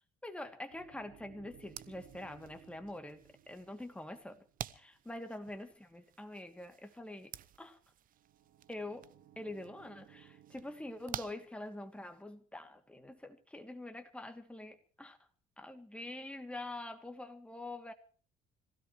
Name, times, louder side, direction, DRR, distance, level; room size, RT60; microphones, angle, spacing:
voice 1, 0.2-4.4 4.7-7.8 8.7-9.1 9.4-15.2 15.6-17.9, left 1 dB, 5° left, 6 dB, 2.7 m, -45 dB
sound 1, 0.7-5.1 8.1-11.5, right 11 dB, 75° right, 2.8 m, -61 dB
sound 2, 1.6-12.2, right 11 dB, 55° right, 0.9 m, -51 dB
26.0 x 16.5 x 3.2 m, 0.39 s
cardioid pair, 110°, 17 cm